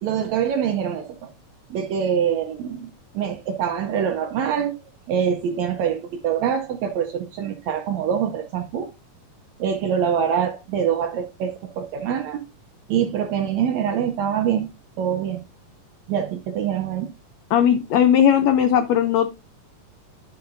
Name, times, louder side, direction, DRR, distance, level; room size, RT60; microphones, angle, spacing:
voice 1, 0.0-1.1 1.7-2.9 3.1-4.8 5.1-8.9 9.6-12.4 12.9-14.7 15.0-15.4 16.1-17.1, right 8 dB, 80° right, 1.6 m, -24 dB
voice 2, 17.5-19.3, left 9 dB, 90° left, 1.5 m, -17 dB
11.5 x 5.7 x 2.6 m
omnidirectional pair, 3.9 m